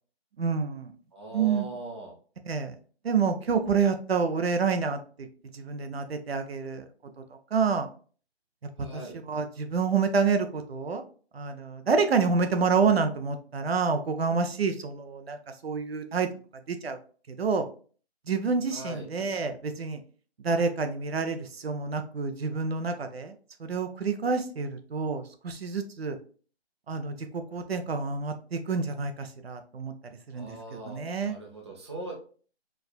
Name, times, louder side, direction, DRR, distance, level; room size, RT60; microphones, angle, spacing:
voice 1, 0.4-0.9 1.3-1.7 2.5-2.7 3.0-5.3 5.5-6.8 7.5-7.9 9.3-11.0 11.3-15.4 15.6-16.3 16.7-17.0 17.3-17.6 18.3-20.0 20.4-23.3 23.6-26.2 26.9-29.9 30.3-30.5 30.9-31.4, right 5 dB, 65° right, 7 dB, 0.6 m, -28 dB
voice 2, 1.1-2.1 8.8-9.2 18.7-19.1 30.3-32.1, right 2 dB, 25° right, 0 dB, 0.6 m, -40 dB
4.6 x 2.4 x 2.2 m, 0.41 s
figure-of-eight pair, 160°, 32 cm